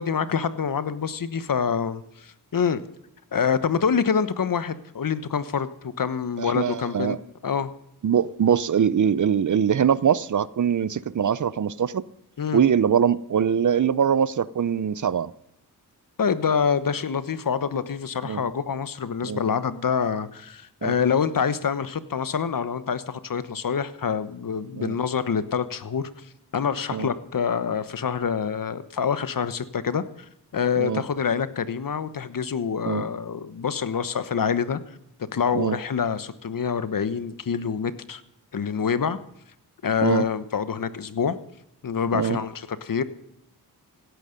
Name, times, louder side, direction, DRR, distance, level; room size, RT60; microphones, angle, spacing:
voice 1, 0.0-2.8 3.3-7.2 7.4-7.7 12.4-12.6 16.2-35.0 35.3-38.2 38.5-39.2 39.8-41.4 41.8-43.0, left 6 dB, 55° left, 14 dB, 1.2 m, -26 dB
voice 2, 6.5-7.2 8.0-12.0 12.5-15.3 18.2-18.4 19.2-19.4 20.8-20.9 24.8-24.9 26.9-27.1 30.8-31.0 32.9-33.0 35.5-35.8 40.0-40.2 42.1-42.4, right 8 dB, 50° right, 19 dB, 0.7 m, -22 dB
16.5 x 13.0 x 5.3 m, 0.77 s
cardioid pair, 60°, 39 cm